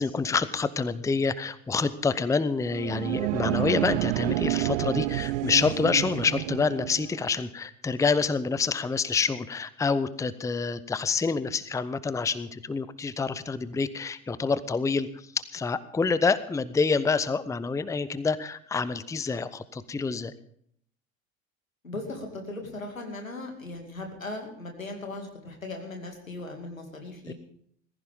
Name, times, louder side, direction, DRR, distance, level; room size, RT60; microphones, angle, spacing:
voice 1, 0.0-20.3 27.3-27.4, left 4 dB, 10° left, 17 dB, 0.7 m, -27 dB
sound 1, 2.6-7.3, right 18 dB, 60° right, 0.5 m, -29 dB
voice 2, 21.8-27.3, left 2 dB, 85° left, 3 dB, 2.5 m, -38 dB
19.0 x 15.5 x 3.6 m, 0.65 s
figure-of-eight pair, 65°, 39 cm